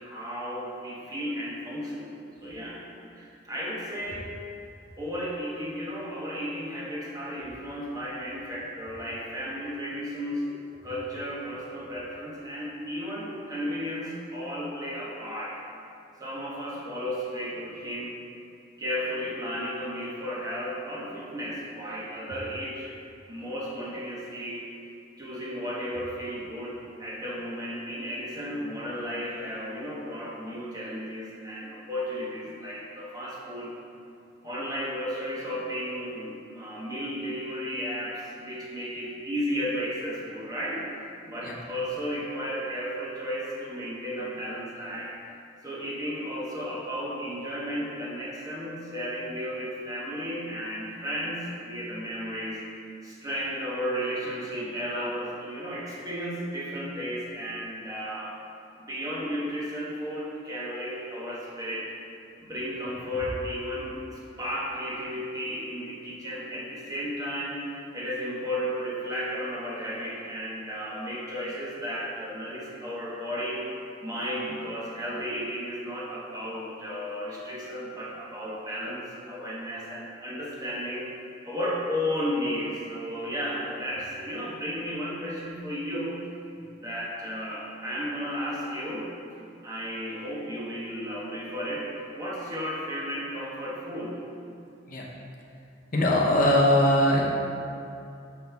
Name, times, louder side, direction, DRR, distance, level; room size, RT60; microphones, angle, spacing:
voice 1, 0.0-2.1 2.4-2.8 3.2-4.3 5.0-10.5 10.8-15.6 16.2-18.2 18.8-22.9 23.3-24.6 25.2-33.8 34.4-40.8 41.3-45.1 45.6-52.6 53.0-58.3 58.8-61.9 62.4-67.6 67.9-73.7 74.0-81.1 81.4-86.2 86.8-89.1 89.6-94.2, equal, 20° right, -6 dB, 1.2 m, -34 dB
voice 2, 95.9-97.4, left 1 dB, 45° left, -3 dB, 0.8 m, -21 dB
6.1 x 5.8 x 3.4 m, 2.6 s
head